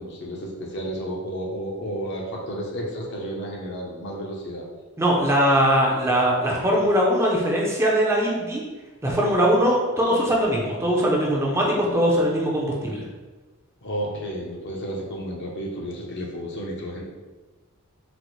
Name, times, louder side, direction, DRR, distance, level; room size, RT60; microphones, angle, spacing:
voice 1, 0.0-4.6 13.8-17.0, equal, 55° left, -1 dB, 0.6 m, -32 dB
voice 2, 5.0-8.6 9.0-13.0, equal, 10° right, -3 dB, 0.4 m, -21 dB
4.0 x 2.0 x 3.0 m, 1.3 s
head